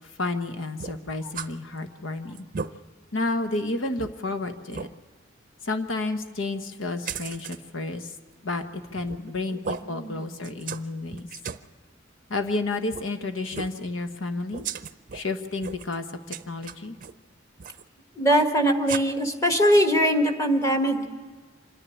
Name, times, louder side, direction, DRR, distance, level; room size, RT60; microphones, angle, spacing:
voice 1, 0.2-2.5 3.1-4.9 5.6-8.1 8.4-11.3 12.3-14.7 15.1-16.0 16.5-17.0, left 2 dB, 90° left, 8 dB, 1.2 m, -31 dB
sound 1, 0.8-1.5 1.9-2.0 2.3-2.7 3.3-3.4 4.0-4.1 4.7-4.9 7.0-7.6 9.0-9.3 9.6-9.8 10.4-10.8 11.1-11.6 12.9-13.1 13.5-13.8 14.5-15.2 15.6-16.0 16.3-17.1 17.6-17.8 18.9-19.0, right 6 dB, 45° right, 0.6 m, -35 dB
voice 2, 18.2-21.1, equal, 15° left, 5 dB, 1.6 m, -21 dB
25.5 x 10.5 x 9.9 m, 1.4 s
head